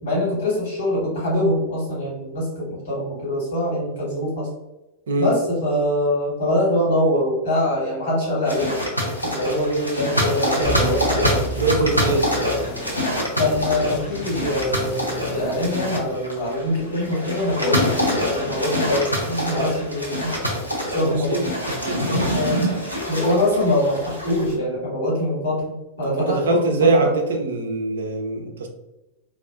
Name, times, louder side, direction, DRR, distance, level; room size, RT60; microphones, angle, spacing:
voice 1, 0.0-4.5 5.2-8.8 9.2-12.2 13.4-17.8 18.3-20.3 20.9-21.4 22.3-22.7 23.1-27.1, left 1 dB, 60° left, -5 dB, 1.4 m, -23 dB
sound 1, 8.4-24.5, equal, 90° left, 0.5 m, -25 dB
sound 2, 10.6-16.8, right 2 dB, 30° left, 0.5 m, -33 dB
voice 2, 11.6-12.2 21.0-21.4 21.9-22.0 26.1-28.7, right 2 dB, 65° right, 3 dB, 0.4 m, -22 dB
2.4 x 2.3 x 2.3 m, 0.97 s
figure-of-eight pair, 90°, 0 cm